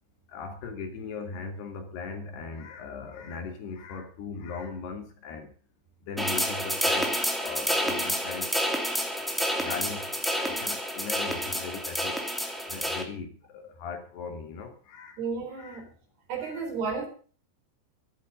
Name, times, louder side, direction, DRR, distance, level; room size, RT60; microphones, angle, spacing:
voice 1, 0.3-5.5 6.1-8.6 9.6-10.1 10.4-12.3 12.7-15.2 15.6-15.8 16.4-16.6, left 5 dB, 75° left, 4.7 m, -39 dB
sound 1, 6.2-13.0, equal, ahead, 1.5 m, -29 dB
voice 2, 15.2-15.9 16.3-17.1, right 5 dB, 70° right, 5.7 m, -32 dB
13.5 x 12.0 x 6.5 m
omnidirectional pair, 4.8 m